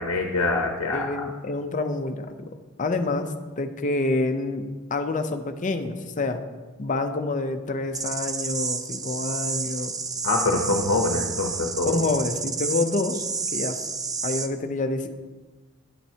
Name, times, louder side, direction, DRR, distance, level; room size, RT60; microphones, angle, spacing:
voice 1, 0.0-1.2 10.2-12.0, left 2 dB, 70° left, 2 dB, 0.8 m, -25 dB
voice 2, 0.8-6.4 6.8-9.9 11.9-13.2 13.5-13.8 14.2-15.1, left 2 dB, 35° left, 7 dB, 0.6 m, -27 dB
sound 1, 7.9-14.5, right 5 dB, 15° right, 0.4 m, -30 dB
11.0 x 7.4 x 2.8 m, 1.3 s
head